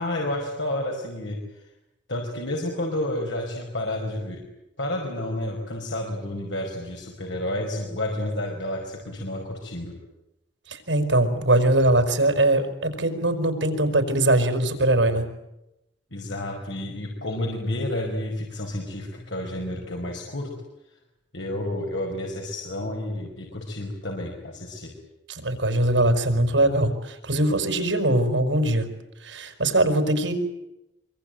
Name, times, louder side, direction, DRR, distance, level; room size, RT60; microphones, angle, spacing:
voice 1, 0.0-1.4 2.1-4.4 4.8-9.9 16.1-20.5 21.3-24.9, left 1 dB, 85° left, 1 dB, 5.2 m, -30 dB
voice 2, 10.7-15.2 25.3-28.9 29.2-30.3, right 1 dB, 80° right, 7 dB, 5.4 m, -21 dB
25.0 x 24.5 x 9.3 m, 0.91 s
head